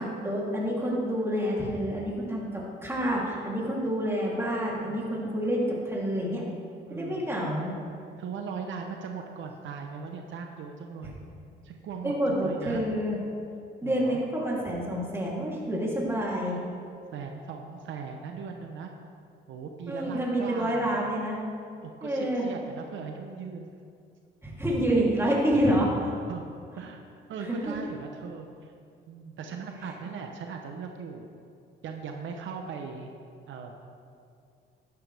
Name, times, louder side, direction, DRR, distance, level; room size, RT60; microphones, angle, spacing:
voice 1, 0.0-6.4 6.9-7.7 12.0-13.2 13.8-16.6 19.9-21.4 22.0-22.4 24.4-26.1 27.4-27.7, equal, 10° right, -5 dB, 3.1 m, -28 dB
voice 2, 4.8-5.4 6.9-7.3 8.2-11.1 11.6-12.8 13.8-14.2 17.1-18.9 19.5-21.1 21.8-23.7 26.3-26.5 26.8-27.0 27.3-28.7 29.1-31.3 31.8-33.1 33.5-33.7, right 5 dB, 75° right, 3 dB, 0.9 m, -39 dB
12.5 x 10.5 x 3.5 m, 2.4 s
cardioid pair, 90°, 20 cm